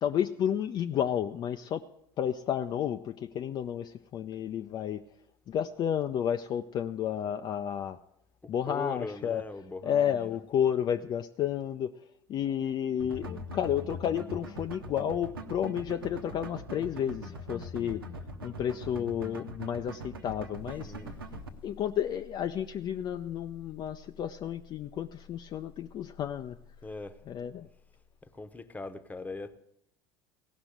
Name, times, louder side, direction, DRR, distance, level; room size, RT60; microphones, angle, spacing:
voice 1, 0.0-1.8 2.2-5.0 5.5-8.0 8.5-9.4 9.8-18.0 18.4-20.9 21.6-26.6 27.3-27.7, left 9 dB, 40° left, 0.5 m, -31 dB
voice 2, 8.4-10.4 20.8-21.2 26.8-27.2 28.2-29.6, left 3 dB, 15° left, 1.0 m, -41 dB
sound 1, 13.0-21.5, equal, 85° right, 1.1 m, -41 dB
sound 2, 20.6-28.4, left 6 dB, 85° left, 1.5 m, -54 dB
16.5 x 6.0 x 9.2 m
figure-of-eight pair, 70°, 12 cm